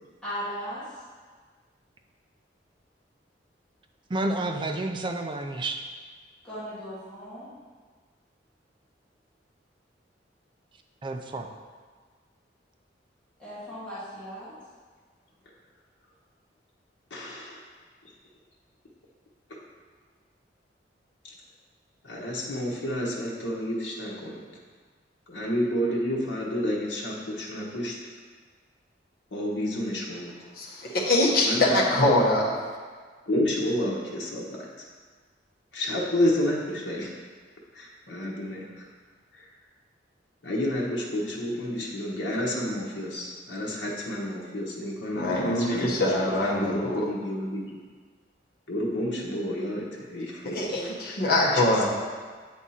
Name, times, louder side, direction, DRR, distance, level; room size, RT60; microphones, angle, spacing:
voice 1, 0.2-1.0 6.4-7.5 13.4-14.5, equal, 5° left, -13 dB, 1.8 m, -37 dB
voice 2, 4.1-5.8 11.0-11.5, right 2 dB, 25° right, 4 dB, 0.4 m, -30 dB
voice 3, 17.1-17.6 19.5-19.6 21.2-21.3 22.0-24.4 25.3-27.9 29.3-30.3 31.4-32.0 33.3-34.4 35.7-37.1 37.7-38.9 39.3-39.5 40.4-47.8 48.7-51.1 51.5-51.9, left 1 dB, 85° left, -4 dB, 1.1 m, -30 dB
voice 4, 30.6-32.6 45.1-47.0 50.5-51.9, left 1 dB, 55° left, -3 dB, 1.2 m, -23 dB
8.4 x 3.6 x 4.2 m, 1.5 s
head